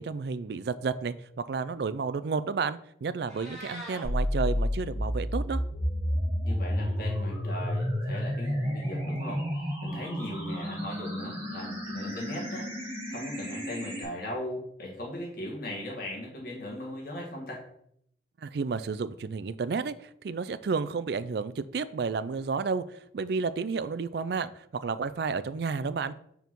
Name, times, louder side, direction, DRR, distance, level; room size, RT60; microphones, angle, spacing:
voice 1, 0.0-5.6 18.4-22.8 23.1-26.2, right 5 dB, 60° right, 14 dB, 0.4 m, -31 dB
Meow, 3.1-4.0, equal, ahead, 2.9 m, -43 dB
sound 1, 4.0-14.0, equal, 15° right, 2.8 m, -31 dB
voice 2, 6.4-9.4 9.8-12.7 13.1-17.6, left 1 dB, 50° left, -2 dB, 1.8 m, -38 dB
5.2 x 4.6 x 6.0 m, 0.73 s
head